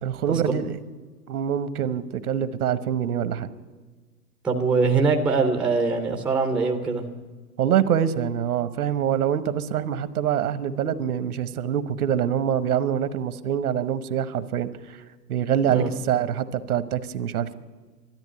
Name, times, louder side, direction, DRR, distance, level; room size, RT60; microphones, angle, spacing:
voice 1, 0.0-0.8 1.3-3.5 7.6-15.0 15.3-17.5, right 9 dB, 70° right, 13 dB, 1.1 m, -25 dB
voice 2, 4.4-7.1 15.6-15.9, right 4 dB, ahead, 4 dB, 0.5 m, -22 dB
12.5 x 10.5 x 9.6 m, 1.4 s
hypercardioid pair, 130°, 46 cm